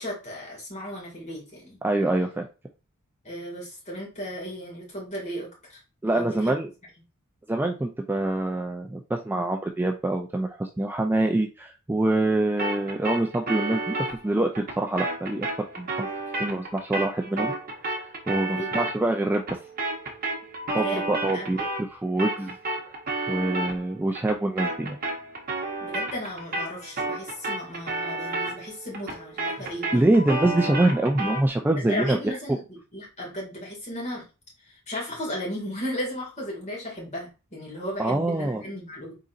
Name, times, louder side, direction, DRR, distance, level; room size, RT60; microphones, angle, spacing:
voice 1, 0.0-1.8 3.2-5.8 6.1-6.6 18.4-18.7 20.8-21.6 25.8-30.0 31.8-32.6 32.9-34.2 34.6-39.1, equal, 30° left, -4 dB, 2.0 m, -35 dB
voice 2, 1.8-2.5 6.0-6.7 7.5-13.9 14.2-16.1 16.4-17.5 18.0-19.4 20.7-22.6 23.3-25.0 29.6-29.7 29.9-32.2 38.0-38.6, right 2 dB, 10° right, 2 dB, 0.3 m, -25 dB
sound 1, 12.6-21.9 22.2-31.5, right 2 dB, 40° right, 1.0 m, -32 dB
4.0 x 3.8 x 2.5 m, 0.30 s
head